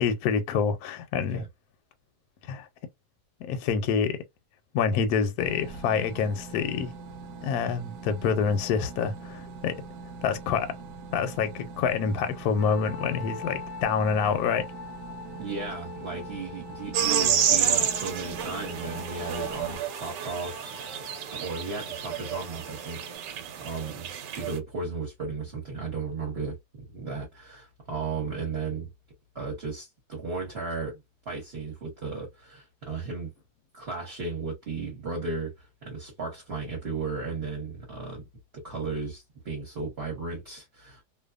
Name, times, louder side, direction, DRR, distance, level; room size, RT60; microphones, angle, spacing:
voice 1, 0.0-1.5 2.5-2.7 3.5-4.2 4.7-6.9 7.4-9.8 10.2-10.7 11.1-14.7, left 6 dB, 70° left, 1.0 m, -27 dB
sound 1, 5.4-19.8, right 4 dB, 70° right, 1.0 m, -43 dB
sound 2, 12.6-23.2, left 7 dB, 40° left, 0.8 m, -44 dB
voice 2, 15.4-20.9 21.3-24.1 24.4-26.6 26.9-28.9 29.3-31.0 31.2-33.3 33.7-38.2 38.5-41.0, right 4 dB, 45° right, 1.1 m, -35 dB
sound 3, 16.9-24.6, right 8 dB, 90° right, 1.2 m, -29 dB
2.7 x 2.2 x 2.3 m
omnidirectional pair, 1.8 m